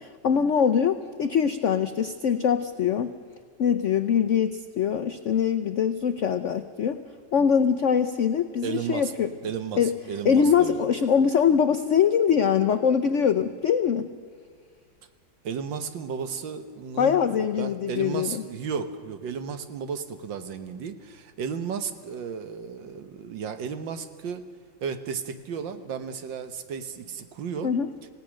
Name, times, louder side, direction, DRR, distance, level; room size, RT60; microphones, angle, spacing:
voice 1, 0.0-3.2 3.6-7.0 7.3-9.3 9.8-9.9 10.2-14.1 17.0-18.4 27.6-27.9, left 7 dB, 80° left, 10 dB, 0.6 m, -23 dB
voice 2, 8.6-9.1 9.4-10.8 15.4-24.4 24.8-27.7, right 6 dB, 70° right, 10 dB, 1.8 m, -34 dB
27.0 x 17.0 x 6.4 m, 2.1 s
omnidirectional pair, 2.1 m